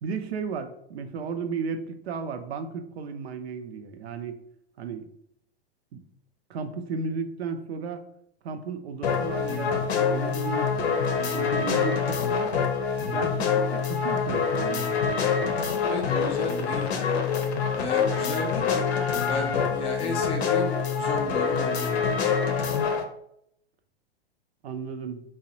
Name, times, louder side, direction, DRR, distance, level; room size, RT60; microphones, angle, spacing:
voice 1, 0.0-4.4 4.8-5.1 5.9-6.0 6.5-8.0 8.4-10.9 11.3-12.5 13.1-14.9 24.6-25.2, right 5 dB, 75° right, 8 dB, 0.5 m, -34 dB
sound 1, 9.0-23.0, left 6 dB, 75° left, 0.6 m, -26 dB
voice 2, 15.9-17.2 17.8-18.6 19.3-22.0, left 3 dB, 20° left, 2 dB, 0.3 m, -34 dB
3.9 x 2.0 x 2.6 m, 0.73 s
hypercardioid pair, 115°, 32 cm